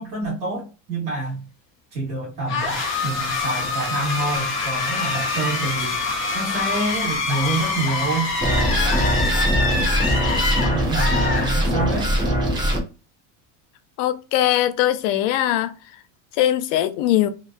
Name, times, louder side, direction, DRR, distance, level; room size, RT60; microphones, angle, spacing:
voice 1, 0.0-1.4 1.9-2.8 3.0-8.3 10.7-12.1, right 2 dB, 50° right, 1.4 m, -27 dB
sound 1, 2.5-12.0, left 4 dB, 30° left, 0.8 m, -25 dB
sound 2, 8.4-12.8, equal, 10° right, 0.4 m, -21 dB
voice 2, 14.0-15.7 16.4-17.3, left 12 dB, 70° left, 0.5 m, -20 dB
2.8 x 2.0 x 2.3 m
cardioid pair, 160°, 39 cm